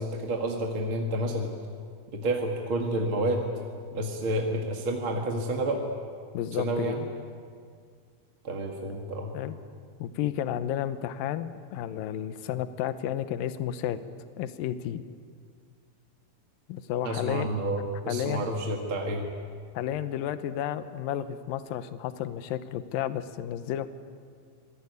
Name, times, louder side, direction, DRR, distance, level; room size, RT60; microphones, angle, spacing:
voice 1, 0.0-1.5 2.1-3.4 3.9-5.8 6.6-7.1 8.4-9.3 17.0-19.3, right 1 dB, 40° right, 1 dB, 2.3 m, -29 dB
voice 2, 6.3-7.0 9.3-9.6 10.0-14.0 14.4-15.0 16.7-17.5 18.1-18.5 19.7-23.9, left 11 dB, 75° left, 11 dB, 2.6 m, -32 dB
25.5 x 20.5 x 9.7 m, 2.2 s
omnidirectional pair, 4.2 m